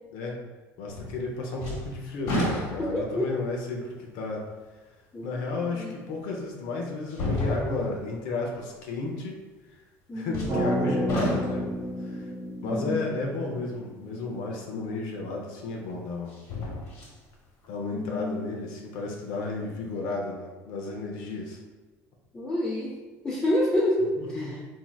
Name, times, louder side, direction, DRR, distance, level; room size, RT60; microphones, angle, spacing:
voice 1, 0.8-4.4 5.2-9.4 9.7-9.8 10.1-12.3 12.6-16.4 17.7-21.6 24.2-24.7, left 3 dB, 75° left, 0 dB, 0.6 m, -33 dB
sound 1, 0.9-1.3 1.6-3.2 3.8-3.9 5.7-5.8 7.1-8.0 10.3-10.8 11.1-11.8 14.8-14.9 16.3-17.2 17.6-17.7, left 1 dB, 60° left, 1.1 m, -31 dB
voice 2, 2.8-3.3 5.1-6.0 10.1-10.5 12.6-13.1 17.9-18.4 22.3-22.9 23.2-24.5, left 1 dB, 15° left, -6 dB, 0.5 m, -28 dB
sound 2, 10.5-14.6, equal, 50° right, 0.9 m, -31 dB
3.2 x 2.6 x 2.3 m, 1.3 s
cardioid pair, 125°, 7 cm